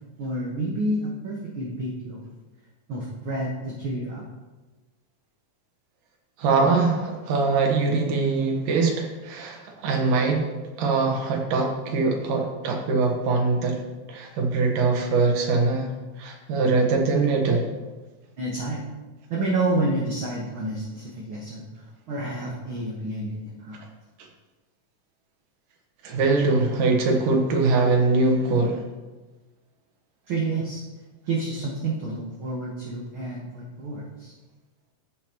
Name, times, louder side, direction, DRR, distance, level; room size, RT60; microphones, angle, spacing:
voice 1, 0.2-2.2 2.9-4.3 18.4-18.8 19.3-23.8 30.3-30.8 31.3-34.3, right 2 dB, 55° right, -4 dB, 1.5 m, -29 dB
voice 2, 6.4-10.5 10.8-13.8 14.1-15.9 16.2-17.7 26.0-28.8, right 3 dB, 80° right, 2 dB, 2.8 m, -22 dB
16.0 x 5.9 x 2.9 m, 1.2 s
omnidirectional pair, 3.7 m